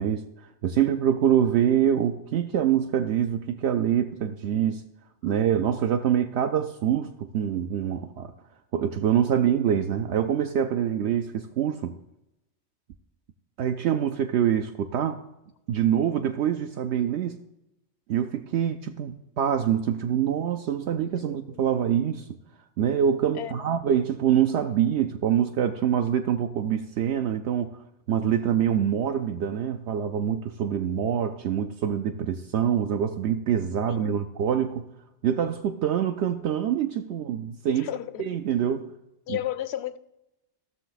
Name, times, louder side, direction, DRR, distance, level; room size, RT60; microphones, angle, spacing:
voice 1, 0.0-4.8 5.2-8.3 8.7-12.0 13.6-15.2 15.7-17.4 18.1-22.4 22.8-27.8 28.1-34.9 35.2-37.9 38.2-38.9 39.3-39.4, right 9 dB, 75° right, 0.8 m, -25 dB
voice 2, 21.2-21.8 23.4-23.5 33.9-34.1 37.8-38.2 39.3-40.0, left 12 dB, 70° left, 0.8 m, -33 dB
15.0 x 6.6 x 4.0 m
omnidirectional pair, 1.2 m